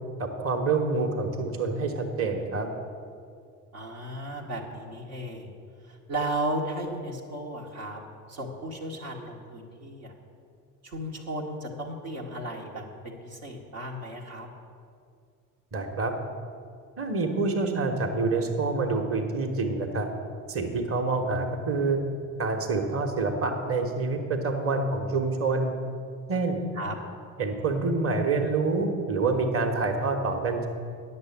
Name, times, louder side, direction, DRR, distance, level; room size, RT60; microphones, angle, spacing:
voice 1, 0.2-2.7 15.7-16.1 17.0-20.1 20.5-22.0 22.4-25.7 26.3-26.6 27.4-30.7, right 3 dB, 35° right, 3 dB, 1.2 m, -27 dB
voice 2, 3.7-5.5 5.8-8.0 8.3-10.1 10.8-14.5 26.7-26.9, right 1 dB, 75° right, -1 dB, 1.4 m, -35 dB
9.9 x 7.0 x 7.2 m, 2.3 s
figure-of-eight pair, 55°, 41 cm